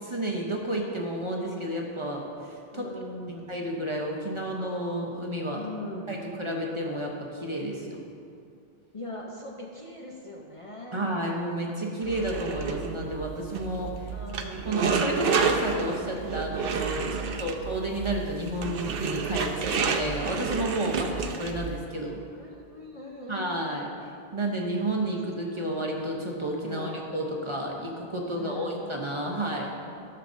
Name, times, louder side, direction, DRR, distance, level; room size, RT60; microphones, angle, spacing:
voice 1, 0.0-2.9 3.5-5.6 6.1-8.1 10.9-14.1 14.7-17.0 17.4-22.2 23.3-23.9 24.3-29.7, right 1 dB, 30° right, -2 dB, 0.8 m, -31 dB
voice 2, 2.7-3.5 5.5-6.2 8.9-11.2 14.1-14.8 17.0-17.6 22.4-23.7 26.6-27.0 28.3-28.8, left 1 dB, 35° left, -2 dB, 0.7 m, -41 dB
sound 1, 12.0-21.7, right 5 dB, 65° right, 0.8 m, -30 dB
13.5 x 6.8 x 2.6 m, 2.4 s
omnidirectional pair, 1.1 m